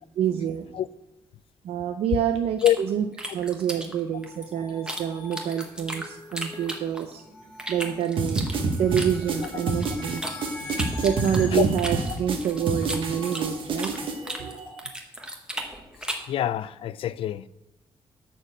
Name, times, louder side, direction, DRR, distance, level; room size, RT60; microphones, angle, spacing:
voice 1, 0.2-0.7 1.6-2.6 2.9-3.0 3.3-7.2 7.7-8.4 8.8-10.3 11.0-13.9 14.4-14.6, right 9 dB, 85° right, 0.5 m, -27 dB
sound 1, 2.6-5.0 5.3-7.2 7.6-10.4 10.7-14.0 14.3-16.3, right 1 dB, 10° right, 1.1 m, -35 dB
sound 2, 4.1-14.8, left 2 dB, 15° left, 2.3 m, -43 dB
sound 3, 8.2-14.1, right 3 dB, 60° right, 1.4 m, -28 dB
voice 2, 16.3-17.5, left 12 dB, 65° left, 0.4 m, -25 dB
11.5 x 4.4 x 7.3 m
wide cardioid pair, 180°, 10 cm